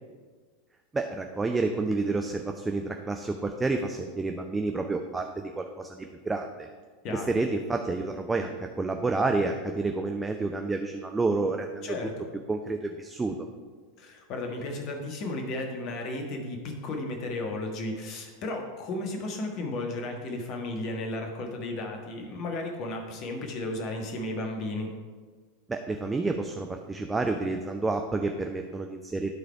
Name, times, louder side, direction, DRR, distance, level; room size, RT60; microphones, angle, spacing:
voice 1, 0.9-6.7 7.1-11.9 12.5-13.3 25.7-29.3, right 3 dB, 15° right, 4 dB, 0.5 m, -29 dB
voice 2, 7.0-7.4 11.8-12.3 14.0-24.9, left 2 dB, 40° left, 2 dB, 1.4 m, -34 dB
11.5 x 4.0 x 4.7 m, 1.5 s
figure-of-eight pair, 85°, 0 cm